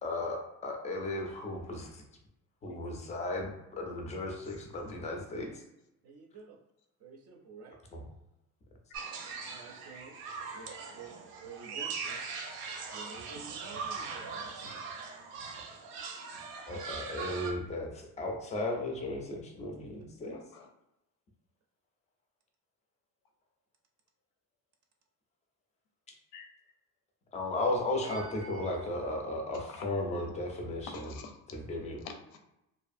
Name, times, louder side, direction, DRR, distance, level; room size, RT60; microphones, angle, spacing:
voice 1, 0.0-2.0 2.6-5.5 7.9-8.0 16.7-20.4 27.3-31.1 31.5-32.0, left 2 dB, 20° left, 1 dB, 0.3 m, -35 dB
voice 2, 6.0-6.6 7.0-7.8 9.5-10.1 10.5-11.1 11.4-12.2 12.9-15.0 28.0-29.1, right 4 dB, 45° right, 1 dB, 0.5 m, -49 dB
sound 1, 8.9-17.5, right 5 dB, 85° right, 0.7 m, -40 dB
voice 3, 20.3-20.7 26.3-26.5 29.5-29.9 30.9-31.4 32.0-32.4, left 5 dB, 90° left, 5 dB, 0.6 m, -47 dB
2.5 x 2.4 x 2.5 m, 0.88 s
cardioid pair, 175°, 34 cm